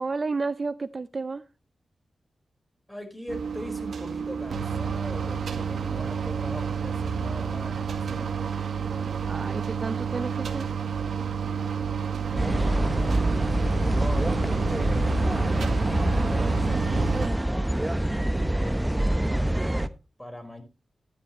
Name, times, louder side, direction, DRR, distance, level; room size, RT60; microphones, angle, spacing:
voice 1, 0.0-1.4 9.2-10.7, right 4 dB, 45° right, 0.5 m, -31 dB
voice 2, 2.9-8.5 12.3-15.6 16.1-17.6 18.4-19.9 20.2-20.6, equal, 10° left, 4.8 m, -40 dB
sound 1, 3.3-17.3, right 7 dB, 90° right, 1.8 m, -30 dB
sound 2, 12.4-19.9, right 1 dB, 10° right, 0.9 m, -25 dB
12.5 x 11.5 x 3.1 m
cardioid pair, 70°, 0 cm